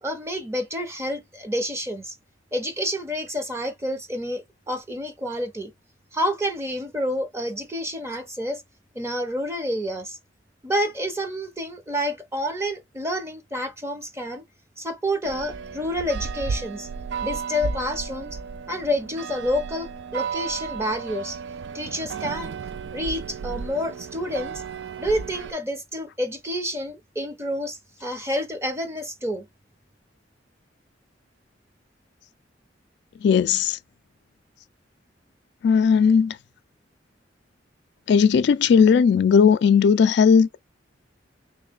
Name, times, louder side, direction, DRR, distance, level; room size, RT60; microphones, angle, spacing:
voice 1, 0.0-2.1 2.5-5.7 6.1-8.6 8.9-10.2 10.6-14.4 14.8-16.9 17.2-18.4 18.7-21.4 21.7-22.5 22.9-24.6 25.0-29.5, equal, 15° right, 0.9 m, -29 dB
sound 1, 15.2-25.5, right 5 dB, 70° right, 0.4 m, -33 dB
voice 2, 33.2-33.8 35.6-36.4 38.1-40.6, left 6 dB, 65° left, 0.3 m, -17 dB
3.2 x 3.0 x 3.6 m
head